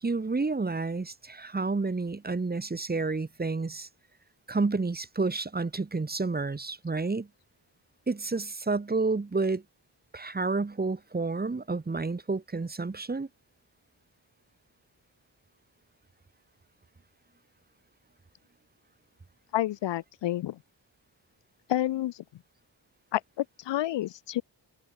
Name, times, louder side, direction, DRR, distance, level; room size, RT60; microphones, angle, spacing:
voice 1, 0.0-3.9 4.5-7.3 8.1-9.6 10.1-13.3, right 3 dB, 20° right, 1.5 m, -30 dB
voice 2, 19.5-20.6 21.7-22.4 23.1-24.4, left 14 dB, 90° left, 0.6 m, -30 dB
wide cardioid pair, 135°, 41 cm